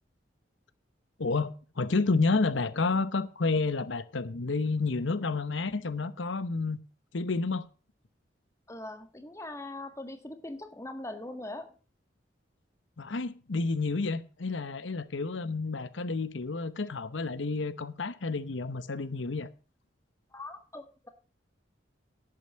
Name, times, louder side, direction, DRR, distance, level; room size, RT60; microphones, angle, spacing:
voice 1, 1.2-6.8 7.1-7.7 13.0-19.5, left 3 dB, 85° left, 0.9 m, -30 dB
voice 2, 8.7-11.7 20.3-21.1, left 2 dB, 15° left, 1.5 m, -41 dB
11.0 x 8.8 x 6.3 m
head